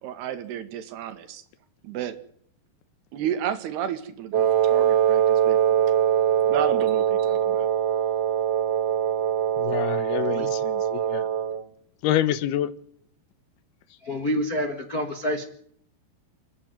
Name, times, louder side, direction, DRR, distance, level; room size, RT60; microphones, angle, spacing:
voice 1, 0.0-1.4 1.8-2.2 3.1-6.0 6.4-7.7, right 9 dB, 85° right, 12 dB, 3.7 m, -32 dB
Wind instrument woodwind instrument, 4.3-11.6, right 9 dB, 60° right, 1.7 m, -22 dB
voice 2, 9.6-11.3 12.0-12.7, left 12 dB, 80° left, 16 dB, 3.0 m, -27 dB
voice 3, 14.0-15.5, equal, 45° left, 5 dB, 1.1 m, -27 dB
29.5 x 9.9 x 9.1 m, 0.64 s
omnidirectional pair, 4.6 m